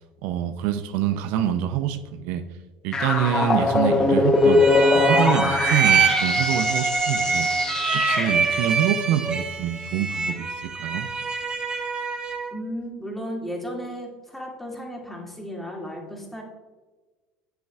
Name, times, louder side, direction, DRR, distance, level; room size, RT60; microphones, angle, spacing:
voice 1, 0.2-2.4 2.8-4.6 4.9-7.5 7.9-11.1, right 10 dB, 70° right, 9 dB, 0.4 m, -26 dB
sound 1, 2.9-8.6, left 3 dB, 25° left, 0.8 m, -22 dB
sound 2, 4.4-12.6, right 5 dB, 25° right, 1.0 m, -25 dB
voice 2, 12.5-16.4, equal, 5° left, -2 dB, 2.1 m, -34 dB
7.7 x 7.0 x 2.3 m, 1.2 s
supercardioid pair, 90°, 3 cm